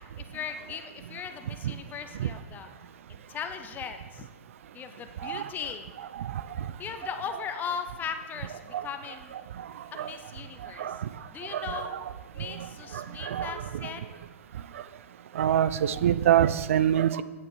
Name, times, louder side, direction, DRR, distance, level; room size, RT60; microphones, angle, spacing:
voice 1, 0.2-2.7 3.1-4.3 4.7-5.9 6.8-9.3 9.9-11.0 11.3-12.0 12.3-14.2, left 7 dB, 25° left, 8 dB, 0.6 m, -38 dB
voice 2, 6.1-6.7 8.7-8.9 9.3-9.7 10.0-10.1 10.6-11.1 11.5-12.0 12.4-12.7 12.9-13.9 15.3-17.2, right 10 dB, 65° right, 15 dB, 0.5 m, -27 dB
8.8 x 7.7 x 4.8 m, 1.3 s
hypercardioid pair, 115°, 8 cm